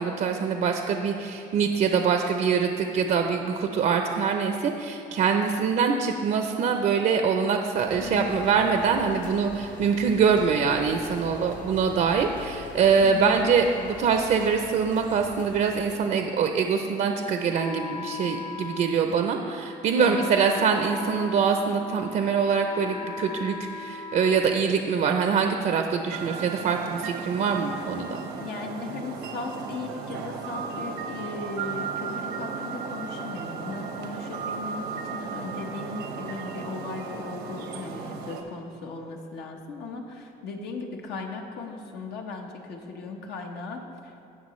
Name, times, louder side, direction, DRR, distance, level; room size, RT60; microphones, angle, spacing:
voice 1, 0.0-28.1, right 6 dB, 55° right, 5 dB, 0.6 m, -24 dB
sound 1, 7.9-16.0, left 3 dB, 50° left, 1.3 m, -43 dB
voice 2, 8.0-8.4 13.0-13.4 20.0-20.3 28.4-44.3, left 4 dB, 75° left, 2 dB, 1.2 m, -37 dB
Wind instrument woodwind instrument, 17.5-25.2, left 5 dB, 25° left, 0.7 m, -39 dB
sound 2, 26.1-38.4, right 5 dB, 90° right, 1.0 m, -35 dB
17.0 x 5.9 x 3.1 m, 2.7 s
cardioid pair, 110°, 17 cm